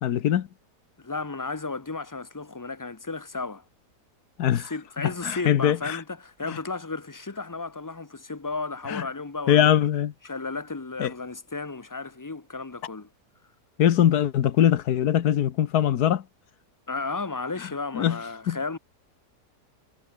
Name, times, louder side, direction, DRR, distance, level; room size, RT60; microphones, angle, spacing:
voice 1, 0.0-0.5 4.4-4.7 5.0-6.0 6.5-6.6 8.9-9.0 9.5-10.1 11.0-11.1 13.8-16.2 17.9-18.2 18.5-18.6, left 10 dB, 75° left, 1.5 m, -22 dB
voice 2, 1.0-3.6 4.7-9.7 10.2-13.1 16.9-18.8, left 3 dB, 15° left, 0.7 m, -33 dB
omnidirectional pair, 1.7 m